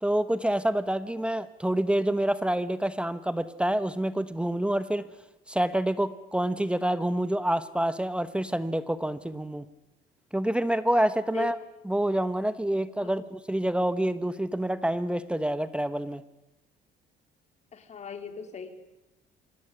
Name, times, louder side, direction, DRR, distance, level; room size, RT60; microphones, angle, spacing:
voice 1, 0.0-5.0 5.5-9.6 10.3-11.6 11.9-16.2, right 1 dB, 5° right, 14 dB, 1.1 m, -27 dB
voice 2, 17.7-18.7, left 6 dB, 40° left, 7 dB, 3.3 m, -38 dB
25.5 x 17.5 x 10.0 m, 1.0 s
cardioid pair, 110°, 17 cm